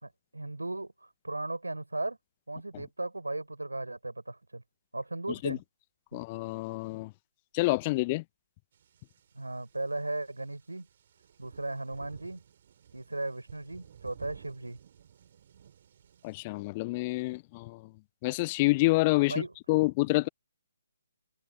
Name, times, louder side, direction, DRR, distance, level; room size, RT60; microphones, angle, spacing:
voice 1, 0.0-2.2 2.5-4.6 4.9-5.6 6.1-6.2 9.3-10.9 11.4-12.4 12.9-14.8 19.3-19.5, right 2 dB, 75° right, 4.5 m, -36 dB
voice 2, 6.1-7.1 7.5-8.2 16.2-17.8 18.2-19.3 19.7-20.3, left 22 dB, 25° left, 0.9 m, -27 dB
sound 1, 8.7-16.4, right 9 dB, 40° right, 4.0 m, -55 dB
figure-of-eight pair, 135°, 0 cm